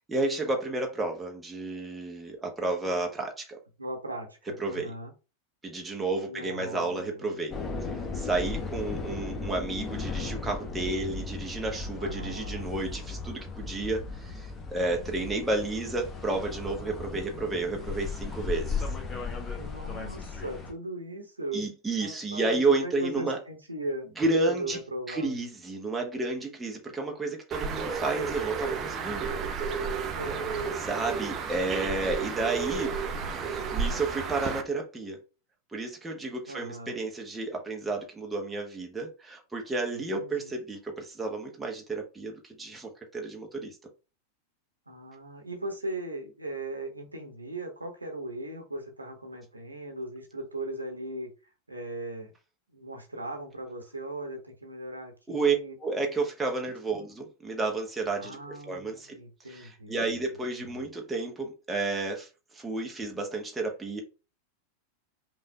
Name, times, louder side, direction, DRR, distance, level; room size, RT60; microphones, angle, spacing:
voice 1, 0.1-3.6 4.6-4.9 5.6-7.6 7.8-18.8 21.5-23.4 24.2-24.8 25.1-29.3 30.8-33.0 33.3-35.2 35.7-43.8 55.3-58.4 58.6-59.2 59.5-64.0, right 3 dB, 10° right, 1.2 m, -31 dB
voice 2, 3.8-5.1 6.3-7.4 7.8-8.1 12.0-12.7 19.6-21.7 22.0-24.1 24.5-25.4 30.1-30.7 36.5-37.0 39.9-40.5 44.9-51.3 51.7-52.3 52.7-55.7 56.9-57.0 58.2-60.2 60.6-60.8, right 1 dB, 80° right, 1.2 m, -38 dB
sound 1, 7.5-20.7, left 4 dB, 20° left, 1.1 m, -36 dB
Bird, 27.5-34.6, right 5 dB, 30° right, 0.7 m, -32 dB
5.4 x 2.7 x 3.3 m
figure-of-eight pair, 90°, 0 cm